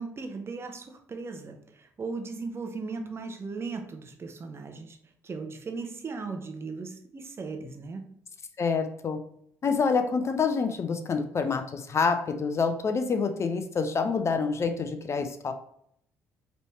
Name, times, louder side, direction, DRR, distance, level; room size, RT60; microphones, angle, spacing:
voice 1, 0.0-5.0 5.2-8.2, right 4 dB, 35° right, 5 dB, 0.9 m, -37 dB
voice 2, 8.6-9.2 9.6-15.5, left 5 dB, 40° left, 7 dB, 0.6 m, -27 dB
5.2 x 3.2 x 3.1 m, 0.69 s
hypercardioid pair, 55°, 7 cm